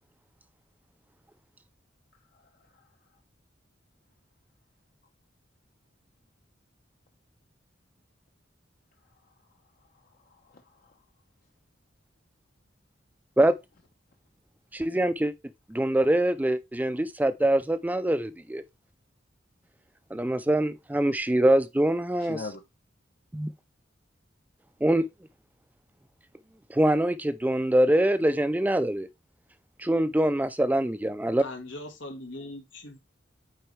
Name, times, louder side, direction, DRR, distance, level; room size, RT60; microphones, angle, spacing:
voice 1, 2.3-2.8 9.3-9.4 10.0-11.0 22.2-22.6, left 3 dB, 55° left, 0.8 m, -43 dB
voice 2, 14.7-15.3 15.7-18.6 20.1-22.4 23.3-23.5 24.8-25.0 26.7-29.1 29.8-31.4, right 1 dB, 10° right, 0.4 m, -24 dB
voice 3, 31.4-33.0, left 2 dB, 85° left, 1.5 m, -40 dB
9.2 x 4.1 x 3.2 m
head